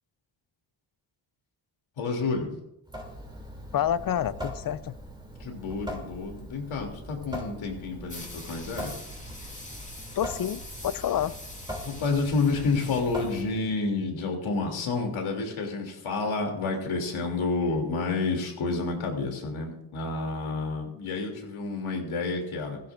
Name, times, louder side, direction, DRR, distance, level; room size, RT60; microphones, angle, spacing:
voice 1, 2.0-2.5 5.4-8.9 11.8-22.8, left 3 dB, 80° left, 2 dB, 3.1 m, -29 dB
Water tap faucet / Sink (filling or washing) / Drip, 2.8-13.8, equal, 10° right, 3.0 m, -41 dB
voice 2, 3.7-4.9 10.1-11.3, left 10 dB, 45° left, 17 dB, 0.5 m, -28 dB
sound 1, 8.1-13.4, left 2 dB, 15° left, 2.3 m, -44 dB
16.0 x 16.0 x 2.6 m, 0.83 s
cardioid pair, 120°, 48 cm